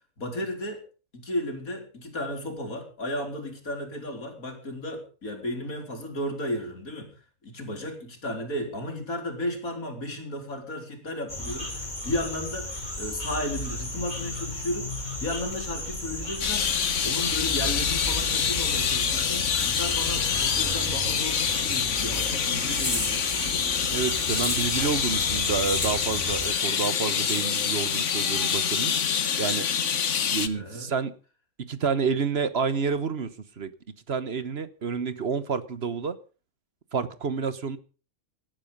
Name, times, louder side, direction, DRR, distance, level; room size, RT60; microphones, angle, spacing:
voice 1, 0.2-0.8 1.1-7.1 7.4-23.6 30.5-30.9, left 1 dB, 90° left, 4.4 m, -34 dB
sound 1, 11.3-26.5, left 1 dB, 30° left, 3.6 m, -33 dB
sound 2, 16.4-30.5, left 7 dB, 60° left, 1.4 m, -26 dB
voice 2, 23.9-28.9 29.4-29.7 30.3-31.1 31.6-33.7 34.1-36.2 36.9-37.8, right 5 dB, 50° right, 1.3 m, -29 dB
18.5 x 12.0 x 5.4 m
omnidirectional pair, 1.4 m